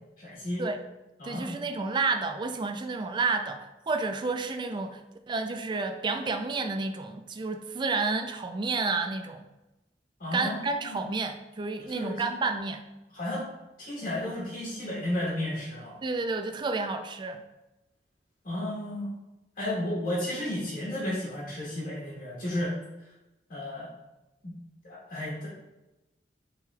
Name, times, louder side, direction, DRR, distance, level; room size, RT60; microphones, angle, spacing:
voice 1, 0.2-0.6 1.2-1.6 10.2-11.0 11.8-12.2 13.1-13.4 13.8-16.0 18.4-19.1 19.6-22.7 23.5-23.9 24.4-24.6 24.8-25.5, left 1 dB, 50° left, -7 dB, 1.2 m, -33 dB
voice 2, 1.2-5.0 5.3-9.5 10.3-12.8 16.0-17.4, right 3 dB, 25° right, 7 dB, 0.3 m, -30 dB
6.0 x 3.3 x 2.3 m, 1.0 s
head